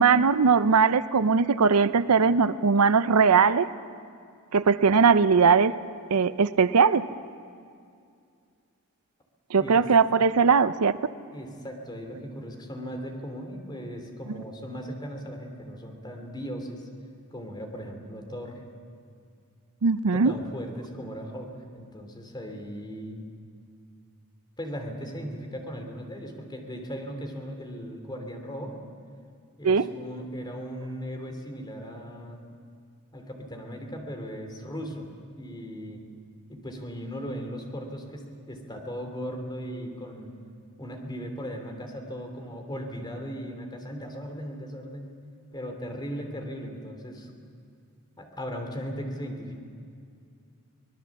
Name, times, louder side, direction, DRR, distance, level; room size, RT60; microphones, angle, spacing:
voice 1, 0.0-3.7 4.5-5.7 6.1-7.1 9.5-11.0 19.8-20.3 29.6-29.9, right 5 dB, 80° right, 14 dB, 0.6 m, -20 dB
voice 2, 11.3-16.9 17.3-18.6 20.1-23.2 24.6-28.8 29.6-32.4 33.1-35.1 35.4-36.0 36.5-40.3 40.8-45.1 45.5-47.3 48.2-49.6, equal, 20° left, 3 dB, 3.0 m, -37 dB
24.5 x 20.0 x 7.3 m, 2.3 s
head